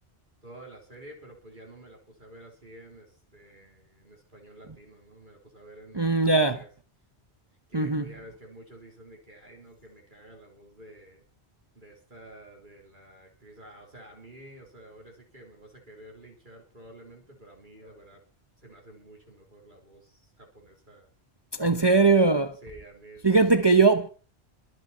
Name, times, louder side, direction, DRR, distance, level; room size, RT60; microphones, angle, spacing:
voice 1, 0.4-6.7 7.7-11.2 11.7-18.2 18.6-21.1 21.7-22.2 22.6-23.6, right 1 dB, 45° right, 3.7 m, -50 dB
voice 2, 5.9-6.6 7.7-8.0 21.5-22.5 23.2-24.1, right 3 dB, 25° right, 0.9 m, -20 dB
23.0 x 7.7 x 5.6 m
omnidirectional pair, 1.1 m